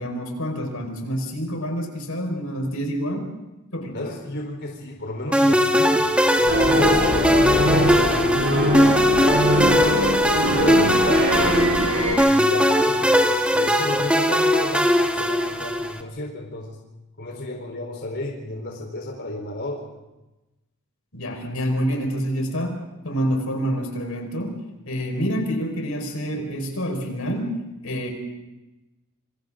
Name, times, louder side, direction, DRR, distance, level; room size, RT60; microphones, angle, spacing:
voice 1, 0.0-3.3 3.7-4.0 21.1-24.6 24.9-27.5 27.8-28.1, equal, 85° left, 2 dB, 5.2 m, -27 dB
voice 2, 3.9-6.1 6.4-10.0 10.3-11.5 12.0-16.8 17.2-19.9, left 1 dB, 55° left, 0 dB, 4.2 m, -32 dB
sound 1, 5.3-16.0, equal, 5° right, 1.7 m, -20 dB
sound 2, 6.5-12.2, equal, 60° right, 6.8 m, -22 dB
27.0 x 26.5 x 3.9 m, 1.0 s
head